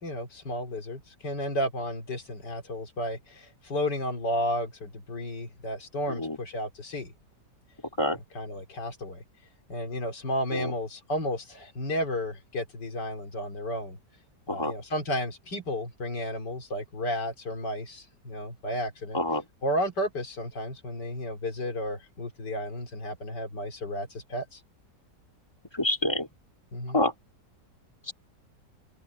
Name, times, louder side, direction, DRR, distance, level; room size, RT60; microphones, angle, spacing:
voice 1, 0.0-7.1 8.3-9.2 9.7-14.0 14.5-19.2 19.6-24.6 26.7-27.0, equal, 85° left, 3.9 m, -32 dB
voice 2, 25.8-26.3 26.9-27.1, left 1 dB, 15° left, 2.6 m, -26 dB
omnidirectional pair, 1.8 m